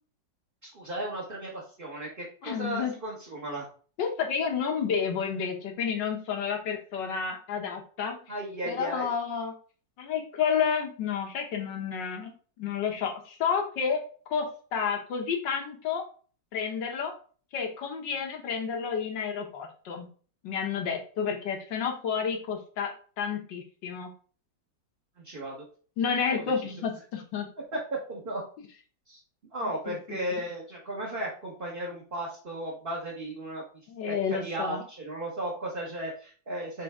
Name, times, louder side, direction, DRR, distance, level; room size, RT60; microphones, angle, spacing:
voice 1, 0.6-3.7 8.3-9.1 25.2-25.6 26.3-26.4 27.7-28.4 29.1-29.2 29.5-33.6 34.1-36.8, right 1 dB, 30° right, -4 dB, 1.5 m, -35 dB
voice 2, 2.4-2.9 4.0-8.3 8.7-9.5 10.0-14.0 14.3-14.5 14.7-16.0 16.5-17.1 17.5-20.1 20.4-24.1 26.0-27.5 29.9-30.4 33.9-34.8, left 6 dB, 70° left, 2 dB, 1.9 m, -30 dB
6.7 x 3.9 x 3.6 m, 0.41 s
omnidirectional pair, 2.0 m